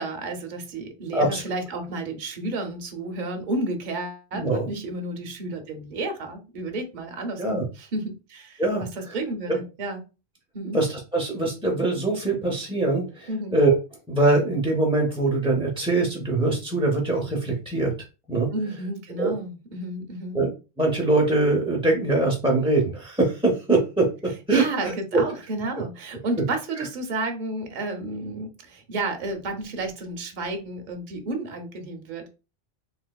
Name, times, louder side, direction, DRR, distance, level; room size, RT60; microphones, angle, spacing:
voice 1, 0.0-8.6 9.0-10.0 10.5-10.8 13.3-13.6 18.5-20.4 24.5-32.3, right 2 dB, 50° right, 5 dB, 0.8 m, -31 dB
voice 2, 4.3-4.7 7.4-7.6 8.6-9.2 9.5-9.6 10.6-13.7 14.1-17.9 18.3-18.5 19.2-19.3 20.3-20.5 20.8-24.9, right 2 dB, 5° right, -1 dB, 0.4 m, -23 dB
3.3 x 2.9 x 2.2 m, 0.31 s
omnidirectional pair, 1.1 m